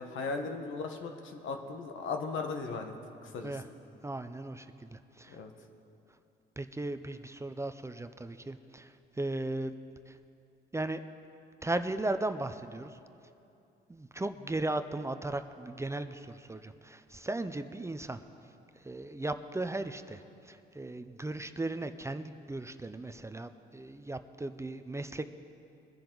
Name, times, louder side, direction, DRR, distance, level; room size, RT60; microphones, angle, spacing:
voice 1, 0.0-2.9 3.2-3.5 5.3-5.5, left 4 dB, 75° left, 5 dB, 1.4 m, -37 dB
voice 2, 4.0-5.4 6.6-9.7 10.1-10.2 10.7-11.0 11.6-12.9 13.9-18.2 18.8-25.2, right 2 dB, 15° right, 9 dB, 0.6 m, -37 dB
22.5 x 10.5 x 4.0 m, 2.7 s
cardioid pair, 90°, 20 cm